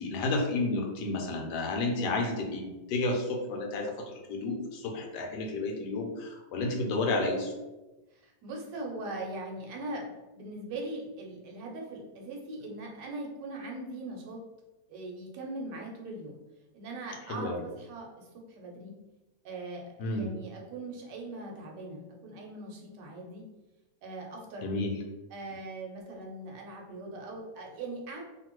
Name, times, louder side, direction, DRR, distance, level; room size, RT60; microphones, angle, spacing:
voice 1, 0.0-7.5 17.3-17.6 20.0-20.3 24.6-24.9, left 2 dB, 75° left, 1 dB, 1.2 m, -31 dB
voice 2, 8.1-14.4 14.9-16.4 16.7-18.9 19.4-23.5 24.0-24.7 25.3-28.2, right 2 dB, 80° right, 0 dB, 1.3 m, -40 dB
2.8 x 2.6 x 2.9 m, 1.1 s
omnidirectional pair, 1.9 m